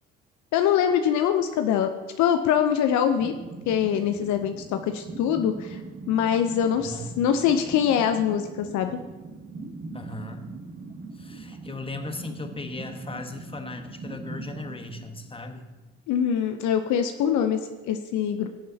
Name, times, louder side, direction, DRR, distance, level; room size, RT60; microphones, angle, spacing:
voice 1, 0.5-1.9 2.2-3.3 3.7-5.8 6.1-9.0 16.1-18.5, left 9 dB, 65° left, 7 dB, 0.7 m, -23 dB
sound 1, 3.2-15.9, right 3 dB, 30° right, 1.9 m, -41 dB
voice 2, 6.8-7.1 9.9-10.5 11.1-15.7, left 2 dB, 15° left, 6 dB, 1.3 m, -37 dB
17.0 x 7.4 x 2.8 m, 1.2 s
hypercardioid pair, 60°, 32 cm